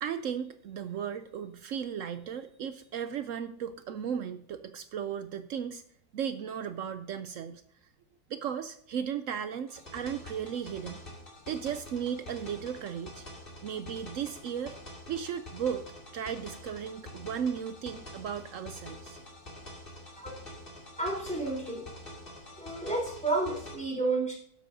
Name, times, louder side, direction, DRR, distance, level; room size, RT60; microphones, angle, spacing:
voice 1, 0.0-5.8 6.1-7.6 8.3-11.0 11.5-13.2 13.6-14.8 15.1-15.8 16.1-19.2, right 8 dB, 70° right, 11 dB, 0.8 m, -35 dB
sound 1, 9.7-23.7, left 1 dB, 30° left, 2.4 m, -47 dB
voice 2, 21.0-21.8 22.6-24.3, right 2 dB, 5° left, -3 dB, 3.5 m, -31 dB
12.5 x 10.0 x 2.7 m, 0.67 s
omnidirectional pair, 1.8 m